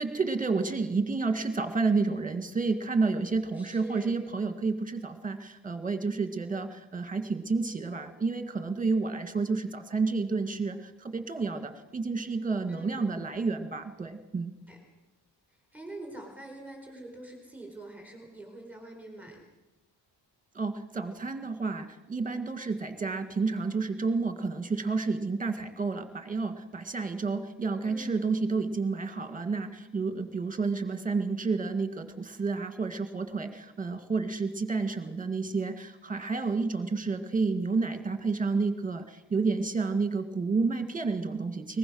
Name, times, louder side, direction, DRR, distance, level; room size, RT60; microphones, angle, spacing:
voice 1, 0.0-14.5 20.6-41.8, right 4 dB, 20° right, 8 dB, 1.9 m, -30 dB
voice 2, 3.5-4.1 12.7-13.1 14.7-14.8 15.7-19.4 27.8-28.2, right 2 dB, 5° right, 1 dB, 4.4 m, -44 dB
22.0 x 20.5 x 6.3 m, 1.0 s
wide cardioid pair, 165°, 42 cm